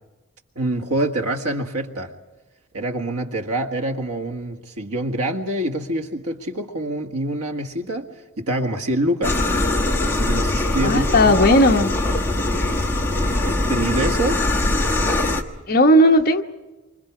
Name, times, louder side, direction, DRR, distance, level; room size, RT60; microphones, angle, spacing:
voice 1, 0.6-2.1 2.7-8.1 8.4-9.4 10.0-11.7 13.7-14.4, right 1 dB, 85° right, 1.8 m, -25 dB
Coffeemaker-harsh-hiss, 9.2-15.4, left 2 dB, 10° left, 1.2 m, -21 dB
voice 2, 10.8-11.9 15.7-16.4, left 1 dB, 40° left, 1.1 m, -15 dB
28.0 x 25.0 x 4.9 m
head